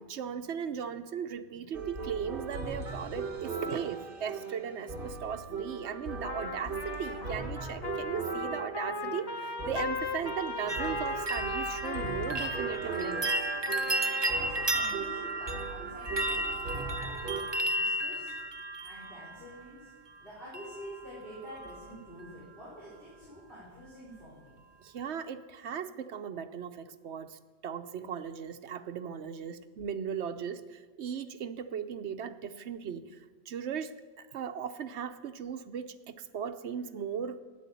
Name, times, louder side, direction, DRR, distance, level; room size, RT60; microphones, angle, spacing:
voice 1, 0.0-13.3 24.8-37.4, right 7 dB, 80° right, 9 dB, 1.1 m, -38 dB
sound 1, 1.7-17.4, right 4 dB, 55° right, 1.5 m, -39 dB
Trumpet, 6.2-14.7, left 2 dB, 25° left, 0.9 m, -38 dB
sound 2, 10.7-19.6 20.5-21.1 21.3-21.9 22.2-22.3, right 1 dB, 25° right, 0.7 m, -33 dB
voice 2, 14.0-18.3 18.8-19.9 20.2-24.6, equal, 55° left, -9 dB, 5.2 m, -48 dB
13.0 x 9.9 x 8.3 m, 1.4 s
omnidirectional pair, 1.1 m